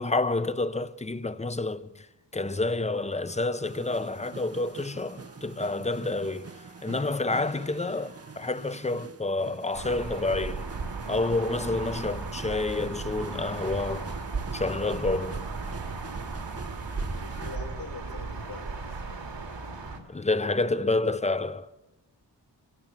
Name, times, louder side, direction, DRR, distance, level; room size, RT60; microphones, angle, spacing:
voice 1, 0.0-2.1 2.3-6.5 6.8-10.7 11.1-14.1 14.5-15.5 20.1-21.7, left 2 dB, 15° left, 0.7 m, -29 dB
sound 1, 2.8-9.2, right 1 dB, 15° right, 3.6 m, -56 dB
sound 2, 3.6-17.6, right 4 dB, 35° right, 1.0 m, -45 dB
sound 3, 9.7-20.0, right 4 dB, 80° right, 2.6 m, -36 dB
voice 2, 16.7-18.8, left 3 dB, 55° left, 5.7 m, -43 dB
26.0 x 17.5 x 7.4 m
wide cardioid pair, 100°, 43 cm